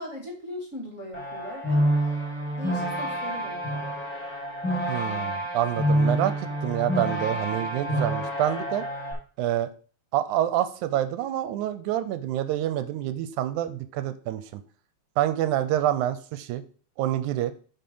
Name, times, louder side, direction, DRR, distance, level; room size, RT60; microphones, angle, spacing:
voice 1, 0.0-1.8 2.5-3.6, left 1 dB, 30° left, 0 dB, 1.7 m, -38 dB
sound 1, 1.1-9.1, equal, 5° left, 1.8 m, -28 dB
voice 2, 4.9-8.9 9.4-9.7 10.1-14.6 15.2-16.6 17.0-17.5, right 12 dB, 90° right, 12 dB, 2.1 m, -27 dB
7.6 x 4.4 x 5.4 m, 0.42 s
omnidirectional pair, 3.5 m